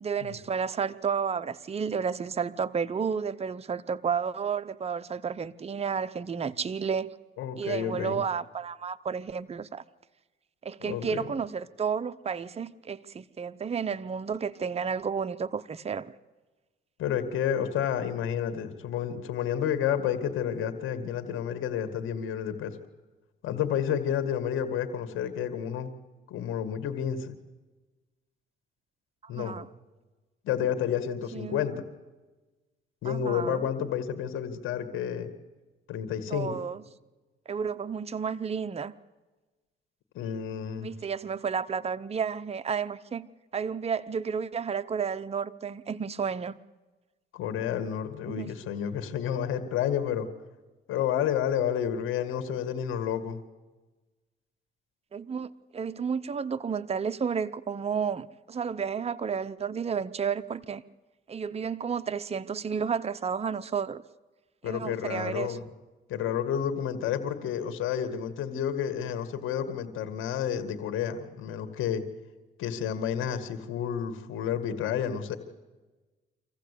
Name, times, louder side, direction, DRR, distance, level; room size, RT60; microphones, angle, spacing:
voice 1, 0.0-7.1 7.6-9.8 10.6-16.1 29.4-29.7 31.3-31.7 33.0-33.6 36.3-36.8 37.5-38.9 40.8-43.3 43.5-46.6 48.2-48.5 55.1-60.8 61.3-64.0 64.6-65.6, right 6 dB, 30° right, 0.8 m, -31 dB
voice 2, 7.4-8.2 10.8-11.2 17.0-22.8 23.4-25.9 26.3-27.4 29.3-29.5 30.4-31.8 33.0-35.3 35.9-36.5 40.1-40.9 47.3-50.3 50.9-53.4 64.6-65.6 66.1-72.0 72.6-75.4, left 9 dB, 85° left, 2.0 m, -30 dB
25.5 x 15.0 x 8.4 m
cardioid pair, 90°, 20 cm